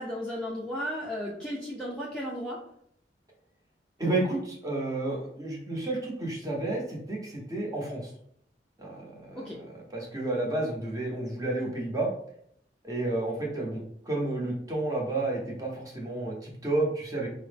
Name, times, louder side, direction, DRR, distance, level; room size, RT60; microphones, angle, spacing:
voice 1, 0.0-2.6 9.4-9.6, equal, 5° left, -5 dB, 0.5 m, -34 dB
voice 2, 4.0-8.1 8.8-12.1 12.8-17.3, right 2 dB, 20° right, -2 dB, 0.8 m, -31 dB
4.6 x 2.0 x 3.3 m, 0.68 s
head